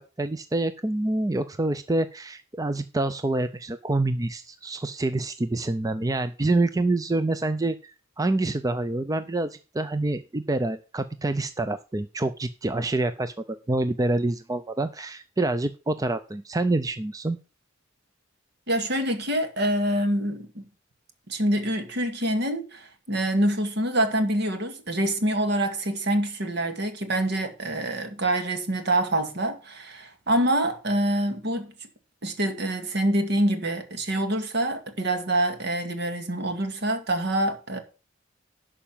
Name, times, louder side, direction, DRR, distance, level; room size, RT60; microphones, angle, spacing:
voice 1, 0.2-17.4, right 2 dB, 20° right, 0.5 m, -27 dB
voice 2, 18.7-20.7 21.3-31.7 32.2-37.8, right 1 dB, 60° right, 2.0 m, -26 dB
11.5 x 5.0 x 7.2 m
head